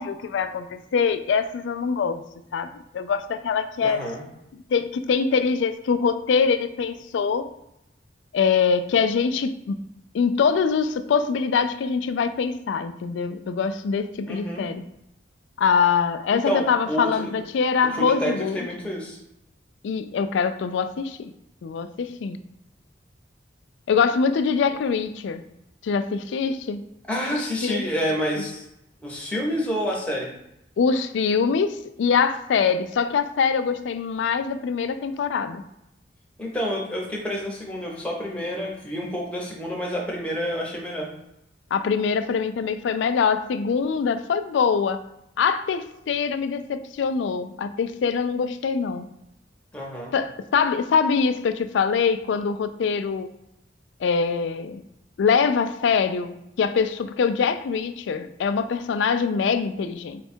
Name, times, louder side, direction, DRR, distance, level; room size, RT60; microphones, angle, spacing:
voice 1, 0.0-2.2 2.5-4.0 4.7-7.5 8.3-9.8 10.1-14.8 15.6-18.7 19.8-21.3 21.6-22.4 23.9-25.4 25.8-26.8 27.6-27.8 30.8-35.6 41.7-45.0 45.4-49.1 50.1-53.3 54.0-54.8 55.2-60.2, left 6 dB, 75° left, 11 dB, 0.3 m, -23 dB
voice 2, 3.8-4.3 14.3-14.7 16.3-17.3 18.0-19.2 27.1-28.7 29.0-30.3 36.4-41.1 49.7-50.1, equal, 5° left, -2 dB, 0.8 m, -28 dB
4.4 x 2.3 x 4.3 m, 0.84 s
head